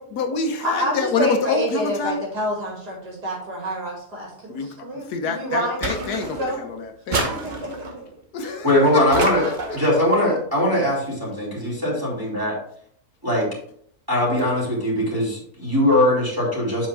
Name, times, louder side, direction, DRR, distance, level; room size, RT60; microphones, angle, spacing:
voice 1, 0.0-2.2 4.5-7.4 8.3-8.7 8.9-9.8, left 4 dB, 75° left, 6 dB, 1.5 m, -27 dB
voice 2, 0.6-6.6 7.1-7.7, equal, 80° right, -2 dB, 3.2 m, -28 dB
sound 1, 5.8-6.6 7.1-8.0 9.1-9.9, right 3 dB, 35° right, 1.0 m, -28 dB
voice 3, 8.4-9.5 9.7-12.6 13.2-13.5 14.1-16.9, left 1 dB, 15° right, -4 dB, 2.5 m, -21 dB
7.6 x 5.6 x 3.4 m, 0.63 s
omnidirectional pair, 1.7 m